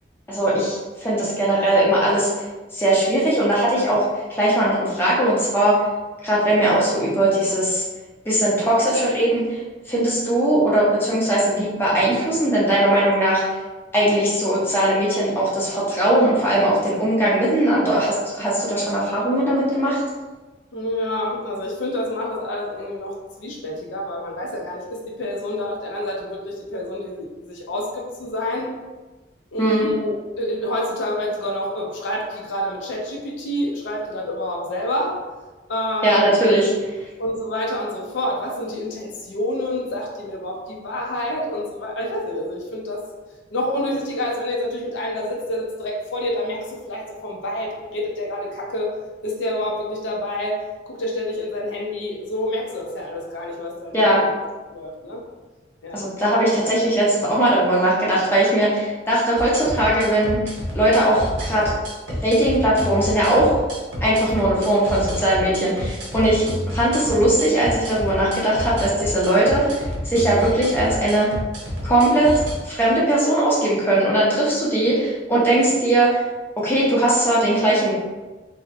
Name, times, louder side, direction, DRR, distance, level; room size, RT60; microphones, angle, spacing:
voice 1, 0.3-2.3 2.7-4.0 4.3-5.7 6.2-7.8 8.2-9.6 9.9-13.4 13.9-20.0 29.6-29.9 36.0-36.7 53.9-54.2 55.9-60.4 60.7-61.6 62.1-63.5 64.0-69.8 70.0-71.3 71.8-72.3 72.6-76.2 76.6-77.9, right 1 dB, 10° left, -7 dB, 0.6 m, -19 dB
voice 2, 20.7-28.8 29.5-35.2 35.7-36.3 37.2-43.0 43.5-48.9 49.2-54.2 54.7-55.2 55.8-56.0, left 1 dB, 85° left, -2 dB, 0.5 m, -28 dB
sound 1, 59.4-72.5, equal, 90° right, 0.7 m, -30 dB
2.6 x 2.0 x 2.5 m, 1.2 s
head